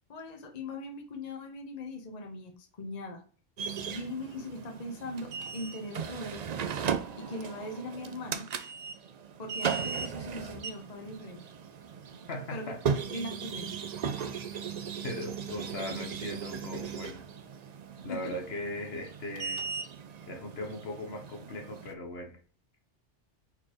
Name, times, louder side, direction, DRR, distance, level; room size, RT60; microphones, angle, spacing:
voice 1, 0.1-3.2 3.9-6.4 7.2-8.5 9.4-11.4 12.5-12.7 13.1-13.7 18.1-18.3, left 1 dB, 40° left, 2 dB, 0.9 m, -40 dB
sound 1, 3.6-21.9, right 6 dB, 60° right, 0.4 m, -37 dB
voice 2, 12.3-13.0 15.0-17.2 18.0-19.7 20.3-22.4, left 2 dB, 60° left, 4 dB, 1.1 m, -39 dB
4.2 x 4.2 x 2.9 m, 0.41 s
omnidirectional pair, 1.3 m